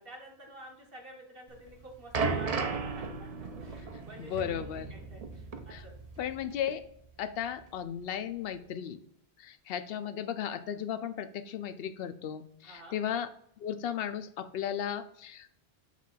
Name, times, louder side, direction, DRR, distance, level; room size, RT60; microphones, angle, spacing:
voice 1, 0.0-5.9 12.6-13.0, right 1 dB, 60° right, -1 dB, 1.7 m, -50 dB
sound 1, 1.5-6.4 6.7-6.9 7.6-7.7, right 4 dB, 45° right, 0.6 m, -35 dB
voice 2, 4.2-4.9 5.7-5.8 6.2-6.8 7.2-9.0 9.4-13.3 13.6-15.5, left 9 dB, 70° left, 11 dB, 0.7 m, -35 dB
7.4 x 2.5 x 5.5 m, 0.70 s
omnidirectional pair, 1.1 m